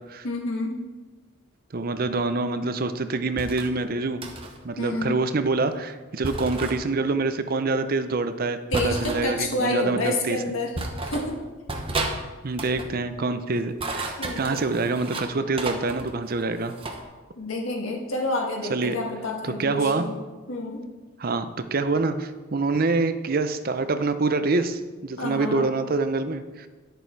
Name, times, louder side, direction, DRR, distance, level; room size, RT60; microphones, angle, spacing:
voice 1, 0.2-0.8 4.8-5.2 8.7-10.7 11.0-11.5 14.2-14.7 17.4-20.8 25.2-25.7, left 2 dB, 90° left, 0 dB, 1.7 m, -29 dB
voice 2, 1.7-4.2 4.6-10.4 12.4-16.8 18.7-19.0 19.4-20.1 21.2-26.7, right 3 dB, 45° right, 10 dB, 0.6 m, -26 dB
sound 1, 3.4-3.7 4.2-4.6 6.2-6.8 8.7-9.2 10.1-10.2 10.7-11.3 11.7-12.2 12.5-12.9 13.6-15.3 15.6-17.0, right 2 dB, 25° right, 0.9 m, -32 dB
10.5 x 6.8 x 4.6 m, 1.3 s
head